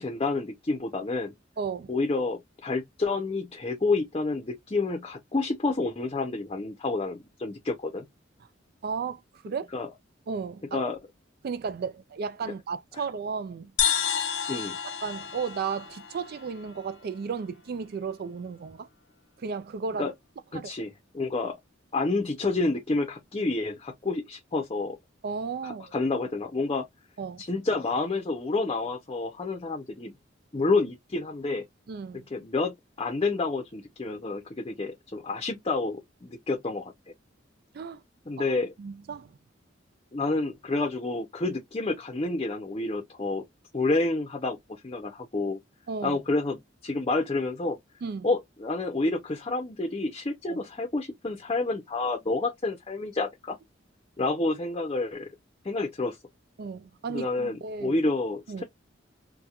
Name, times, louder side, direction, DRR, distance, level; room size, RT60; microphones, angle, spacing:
voice 1, 0.0-1.3 1.9-8.1 9.7-9.9 10.7-11.0 14.5-14.8 20.0-20.1 20.5-21.6 21.9-25.0 25.6-26.9 27.4-30.1 30.5-31.6 32.3-36.9 38.3-38.7 40.1-43.4 43.7-45.6 46.0-47.8 48.2-53.6 54.2-55.3 55.6-56.2 57.1-58.6, left 3 dB, 30° left, 0.6 m, -29 dB
voice 2, 1.6-1.9 8.8-9.7 10.3-10.9 11.4-13.7 14.8-18.9 19.4-20.1 20.5-20.7 25.2-26.0 27.2-27.4 31.9-32.3 37.7-38.0 38.4-38.5 38.8-39.3 45.9-46.2 48.0-48.3 50.5-50.6 56.6-58.0 58.5-58.6, right 5 dB, 55° right, 0.3 m, -34 dB
sound 1, 13.8-17.3, left 8 dB, 85° left, 0.8 m, -31 dB
4.2 x 2.2 x 2.3 m
head